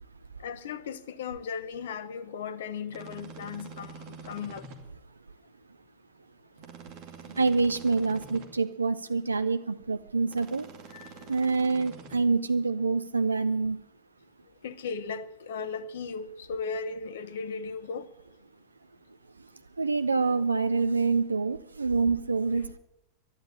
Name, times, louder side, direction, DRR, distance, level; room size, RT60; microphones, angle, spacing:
voice 1, 0.4-4.7 10.9-11.3 14.6-18.1, left 5 dB, 60° left, 0.9 m, -37 dB
sound 1, 2.9-4.8 6.6-8.5 10.3-12.2, right 5 dB, 45° right, 2.4 m, -46 dB
voice 2, 7.3-10.7 11.3-13.8 19.8-22.8, right 4 dB, 80° right, 0.5 m, -26 dB
12.0 x 10.5 x 9.8 m
figure-of-eight pair, 90°, 0 cm